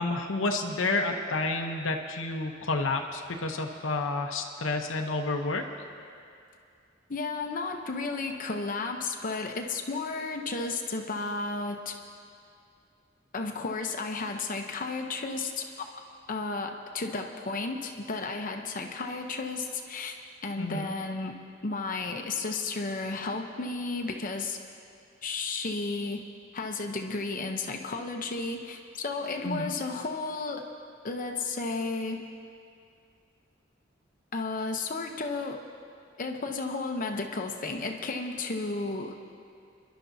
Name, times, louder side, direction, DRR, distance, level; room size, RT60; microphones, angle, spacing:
voice 1, 0.0-5.6 20.6-20.9 29.4-29.7, left 3 dB, 85° left, 3 dB, 0.9 m, -30 dB
voice 2, 7.1-12.0 13.3-15.9 16.3-20.2 20.4-21.4 21.6-24.6 25.2-26.2 26.5-30.7 31.0-32.3 34.3-35.6 36.2-39.2, left 3 dB, 45° left, 3 dB, 0.8 m, -33 dB
28.0 x 11.5 x 2.7 m, 2.4 s
head